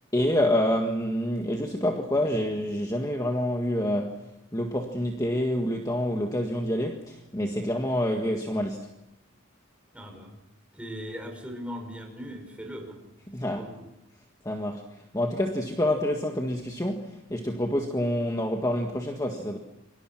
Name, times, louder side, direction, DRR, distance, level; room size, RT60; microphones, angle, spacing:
voice 1, 0.1-4.2 4.5-9.0 13.3-13.7 14.4-19.6, left 1 dB, 15° left, 1.7 m, -27 dB
voice 2, 9.9-10.4 10.7-13.0 13.4-13.9, equal, 5° right, 5.5 m, -39 dB
29.0 x 24.0 x 6.0 m
head